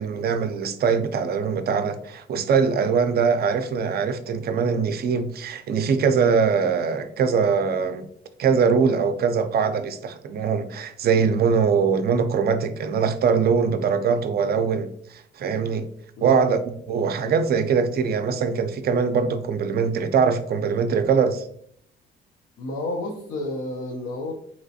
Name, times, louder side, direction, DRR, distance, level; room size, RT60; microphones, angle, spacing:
voice 1, 0.0-8.1 8.4-15.9 16.2-21.5, right 6 dB, 55° right, 0.4 m, -22 dB
voice 2, 16.2-16.6 22.6-24.3, left 2 dB, 80° left, 0.6 m, -31 dB
3.2 x 2.9 x 2.7 m
cardioid pair, 90°, 20 cm